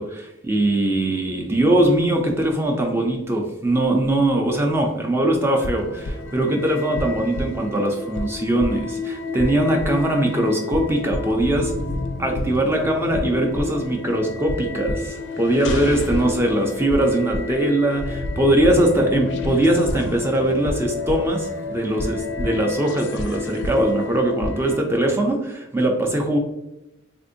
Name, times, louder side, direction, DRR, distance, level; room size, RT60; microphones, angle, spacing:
voice 1, 0.0-11.8 12.2-26.4, right 1 dB, 10° right, 1 dB, 0.4 m, -21 dB
sound 1, 5.6-24.8, left 2 dB, 55° left, 0.4 m, -29 dB
3.5 x 2.6 x 2.6 m, 0.91 s
head